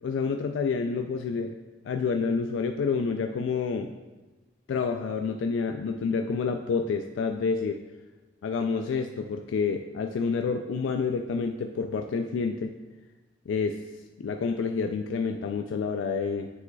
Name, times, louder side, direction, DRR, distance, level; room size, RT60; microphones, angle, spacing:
voice 1, 0.0-1.5 1.8-3.9 4.7-7.8 8.4-12.7 13.5-13.8 14.2-16.5, left 5 dB, 85° left, 5 dB, 0.3 m, -28 dB
7.4 x 6.3 x 2.3 m, 1.2 s
head